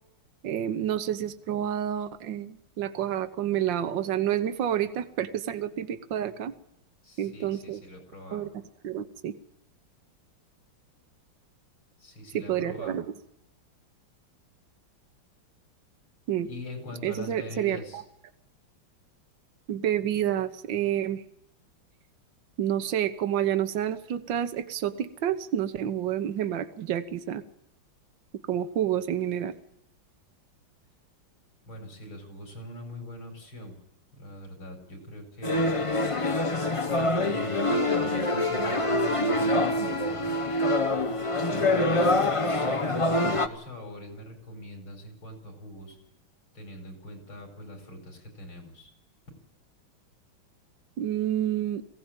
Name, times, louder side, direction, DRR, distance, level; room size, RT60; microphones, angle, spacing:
voice 1, 0.4-6.5 7.2-7.8 8.3-8.5 8.8-9.3 12.3-13.0 16.3-16.5 17.0-18.0 19.7-21.2 22.6-27.4 28.5-29.5 42.0-42.1 51.0-51.8, right 10 dB, 65° right, 10 dB, 1.7 m, -29 dB
voice 2, 7.0-8.5 12.0-13.0 16.4-18.0 31.7-33.8 34.2-35.7 36.8-40.3 41.4-46.0 46.5-48.9, left 1 dB, 70° left, 4 dB, 5.8 m, -43 dB
sound 1, 35.4-43.5, left 2 dB, 30° left, 0.5 m, -25 dB
21.5 x 17.0 x 8.9 m, 0.86 s
omnidirectional pair, 2.3 m